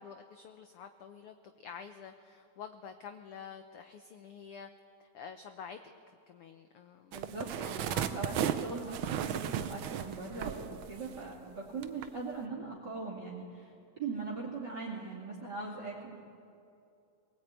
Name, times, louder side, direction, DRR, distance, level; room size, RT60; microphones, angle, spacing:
voice 1, 0.0-4.7 5.0-5.8 6.1-7.2, left 7 dB, 70° left, 7 dB, 1.4 m, -48 dB
voice 2, 7.1-16.2, right 4 dB, 35° right, -2 dB, 2.9 m, -40 dB
sound 1, 7.1-11.4 11.8-12.1, right 9 dB, 85° right, 1.1 m, -35 dB
22.0 x 18.5 x 8.9 m, 2.6 s
omnidirectional pair, 3.3 m